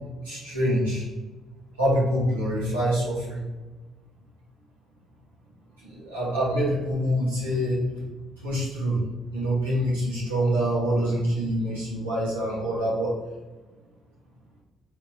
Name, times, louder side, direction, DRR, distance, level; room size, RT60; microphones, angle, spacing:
voice 1, 0.2-1.1 1.8-3.4 5.8-8.1 8.4-9.0 9.3-13.1, equal, 90° right, -9 dB, 1.4 m, -25 dB
4.3 x 4.2 x 2.8 m, 1.2 s
hypercardioid pair, 45°, 0 cm